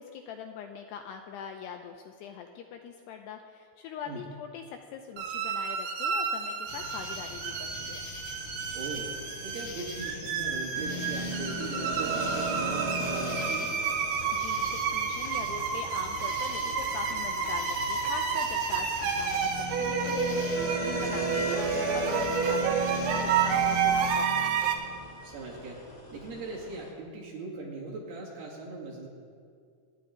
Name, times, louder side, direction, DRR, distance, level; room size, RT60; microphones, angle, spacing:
voice 1, 0.0-8.1 14.3-24.6, left 7 dB, 85° left, 4 dB, 2.4 m, -42 dB
sound 1, 5.2-24.7, right 6 dB, 80° right, 3.6 m, -30 dB
sound 2, 6.7-24.2, left 4 dB, 65° left, 1.9 m, -43 dB
voice 2, 8.7-9.1 9.4-13.7 21.1-21.6 25.2-25.8 26.1-29.1, right 3 dB, 60° right, -4 dB, 3.9 m, -39 dB
sound 3, 10.7-26.9, right 1 dB, 40° left, 0.5 m, -38 dB
27.0 x 10.5 x 3.9 m, 2.3 s
omnidirectional pair, 5.5 m